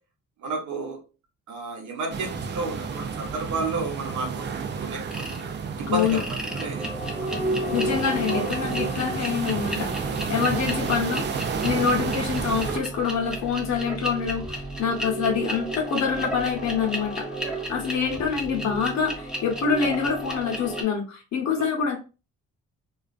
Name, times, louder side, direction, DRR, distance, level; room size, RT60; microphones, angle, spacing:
voice 1, 0.4-1.0 1.5-4.5 4.8-5.2 5.8-6.2 6.5-6.9 8.3-8.4 18.1-18.2 21.6-21.7, right 3 dB, 75° right, 1 dB, 0.8 m, -31 dB
sound 1, 2.1-12.8, right 6 dB, 40° right, 0.4 m, -31 dB
sound 2, 5.1-5.4 5.9-20.8, right 1 dB, ahead, 0.7 m, -32 dB
voice 2, 5.9-6.2 7.7-22.0, left 6 dB, 65° left, 1 dB, 0.9 m, -26 dB
2.3 x 2.3 x 2.4 m, 0.32 s
cardioid pair, 90°, 30 cm